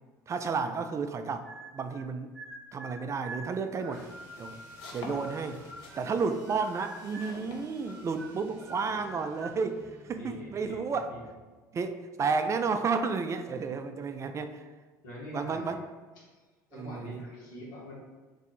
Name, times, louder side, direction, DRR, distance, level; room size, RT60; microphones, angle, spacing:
voice 1, 0.3-1.5 1.7-2.4 2.7-4.0 4.4-4.6 4.9-5.6 6.0-11.1 11.7-14.7 15.3-15.8 16.7-17.2, right 5 dB, 30° right, 8 dB, 0.4 m, -32 dB
sound 1, 1.4-2.0 2.3-6.2 6.5-7.4 7.8-9.6, right 1 dB, 5° left, 0.8 m, -46 dB
sound 2, 3.4-8.5, left 3 dB, 60° left, 0.6 m, -48 dB
sound 3, 3.9-11.4, right 2 dB, 75° right, 0.7 m, -56 dB
voice 2, 10.1-10.8 11.1-11.2 15.0-15.7 16.2-16.3 16.7-17.9, left 1 dB, 80° left, -5 dB, 1.2 m, -44 dB
2.7 x 2.5 x 4.1 m, 1.3 s
hypercardioid pair, 75°, 10 cm